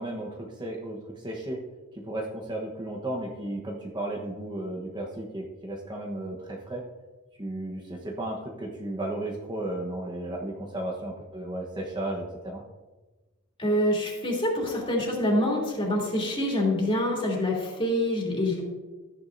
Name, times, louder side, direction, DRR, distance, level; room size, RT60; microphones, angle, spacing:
voice 1, 0.0-1.6 1.9-6.8 7.4-12.6, right 1 dB, 20° right, -1 dB, 1.1 m, -34 dB
voice 2, 13.6-18.6, left 1 dB, 25° left, -3 dB, 3.0 m, -26 dB
14.0 x 9.8 x 2.7 m, 1.2 s
head